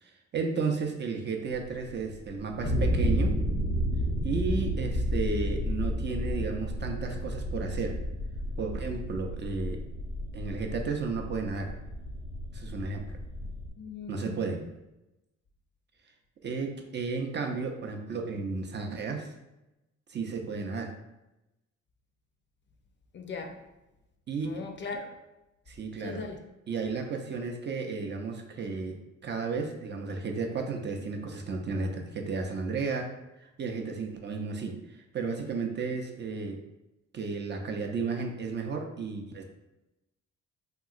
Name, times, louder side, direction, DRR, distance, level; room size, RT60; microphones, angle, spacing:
voice 1, 0.0-3.4 4.2-8.0 8.6-9.9 10.3-11.7 12.5-13.2 14.1-14.6 16.4-19.3 20.1-20.9 24.3-24.6 25.7-26.3 26.7-33.1 33.4-36.6 37.1-39.4, right 4 dB, 35° right, 3 dB, 0.4 m, -33 dB
sound 1, 1.5-13.7, equal, 85° left, 0.6 m, -31 dB
voice 2, 13.8-14.6 23.1-23.5 24.4-25.1 26.0-26.4, left 4 dB, 40° left, 3 dB, 0.4 m, -39 dB
2.9 x 2.8 x 2.4 m, 0.96 s
cardioid pair, 90°, 30 cm